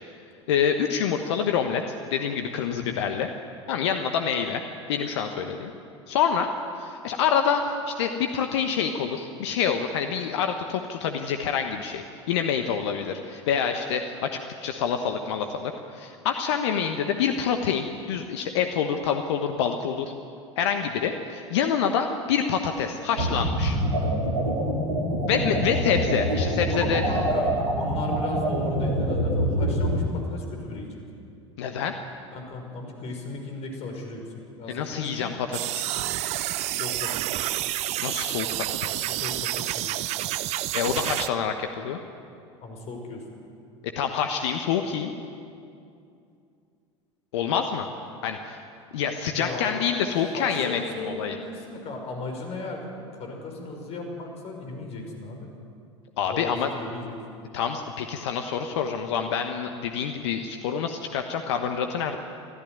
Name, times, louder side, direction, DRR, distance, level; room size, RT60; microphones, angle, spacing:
voice 1, 0.5-1.8 2.1-3.3 3.7-4.6 4.9-5.7 6.1-6.5 6.8-20.1 20.6-23.8 25.3-27.1 31.6-31.9 34.7-36.0 38.0-39.0 40.7-42.0 43.9-45.1 47.3-47.9 48.2-48.6 48.9-51.4 56.2-56.7 57.5-62.2, left 7 dB, 65° left, 6 dB, 1.3 m, -27 dB
sound 1, 23.2-30.0, equal, 80° right, 3.6 m, -25 dB
voice 2, 25.4-25.7 27.1-31.0 32.3-34.2 34.6-35.3 36.7-37.4 39.1-40.0 42.6-43.2 49.3-52.8 53.1-55.5 56.3-57.1, left 2 dB, 40° left, 3 dB, 5.6 m, -36 dB
sound 2, 35.5-41.3, right 14 dB, 45° right, 0.8 m, -29 dB
24.5 x 14.0 x 9.4 m, 2.5 s
figure-of-eight pair, 75°, 16 cm